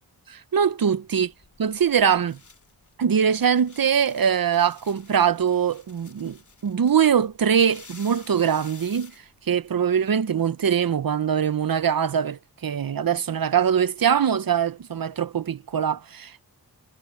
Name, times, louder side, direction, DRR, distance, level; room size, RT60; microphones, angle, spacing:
voice 1, 0.3-1.3 1.6-2.4 3.0-6.4 6.6-9.1 9.5-16.4, right 8 dB, 60° right, 0.8 m, -22 dB
sound 1, 1.3-10.1, left 4 dB, 50° left, 2.9 m, -51 dB
wide cardioid pair, 100°, 39 cm